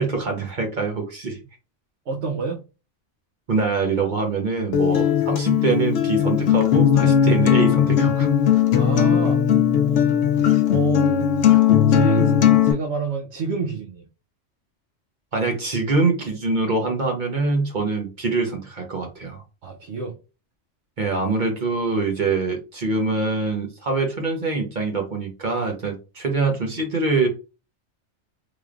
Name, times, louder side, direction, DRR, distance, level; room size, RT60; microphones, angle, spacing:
voice 1, 0.0-1.4 3.5-8.3 15.3-19.4 21.0-27.3, right 3 dB, 45° right, 3 dB, 0.9 m, -24 dB
voice 2, 2.1-2.6 8.8-9.4 10.7-11.1 11.9-12.3 12.6-14.1 19.6-20.2, right 4 dB, 75° right, 0 dB, 1.0 m, -28 dB
Acoustic guitar, 4.7-12.7, left 9 dB, 75° left, 0.9 m, -18 dB
3.3 x 3.0 x 2.4 m, 0.30 s
omnidirectional pair, 1.2 m